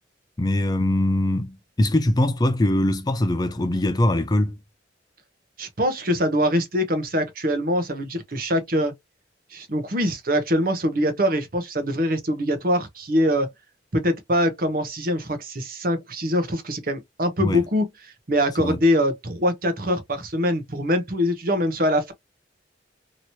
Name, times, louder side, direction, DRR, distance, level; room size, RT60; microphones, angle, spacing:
voice 1, 0.4-4.6 17.4-17.6 18.6-18.8, left 1 dB, 20° left, 0.4 m, -22 dB
voice 2, 5.6-8.9 9.5-13.5 13.9-17.8 18.3-22.1, equal, 50° right, 0.8 m, -23 dB
2.9 x 2.9 x 2.7 m
head